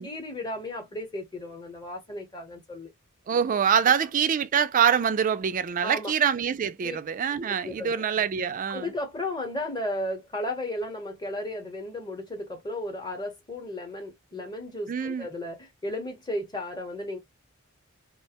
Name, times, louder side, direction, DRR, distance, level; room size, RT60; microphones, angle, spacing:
voice 1, 0.0-2.9 5.8-6.1 6.8-7.0 7.4-7.9 8.7-17.2, left 1 dB, 20° left, 0.9 m, -34 dB
voice 2, 3.3-8.9 14.9-15.3, right 7 dB, 35° right, 0.3 m, -25 dB
2.4 x 2.1 x 2.8 m
head